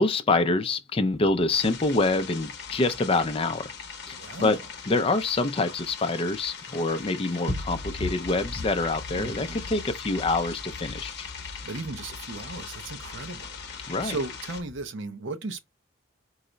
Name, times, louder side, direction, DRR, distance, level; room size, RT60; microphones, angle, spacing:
voice 1, 0.0-3.7 4.1-4.6 4.9-11.3 13.9-14.2, left 3 dB, 25° left, 0.4 m, -26 dB
sound 1, 1.1-6.5 6.9-7.1 7.4-14.8, left 2 dB, 50° right, 1.1 m, -41 dB
sound 2, 1.5-14.6, left 6 dB, 55° left, 0.8 m, -41 dB
voice 2, 4.1-4.6 9.2-9.6 11.6-15.6, right 3 dB, 65° right, 0.7 m, -36 dB
4.7 x 2.1 x 3.9 m
head